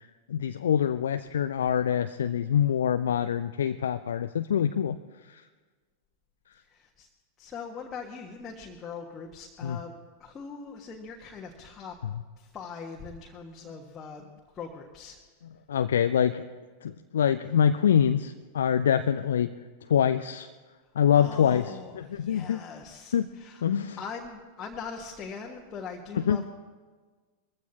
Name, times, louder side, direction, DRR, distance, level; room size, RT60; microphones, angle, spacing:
voice 1, 0.3-5.0 5.3-5.4 9.6-9.8 15.7-16.4 16.8-19.5 19.9-20.5 21.0-21.6 22.0-22.6 23.1-23.3 23.6-24.0 26.3-26.4, left 8 dB, 65° left, 10 dB, 0.4 m, -25 dB
voice 2, 6.6-7.1 7.4-11.9 12.4-14.2 14.5-15.2 21.1-26.4, left 5 dB, 20° left, -1 dB, 1.5 m, -41 dB
22.0 x 15.0 x 2.9 m, 1.4 s
figure-of-eight pair, 90°, 0 cm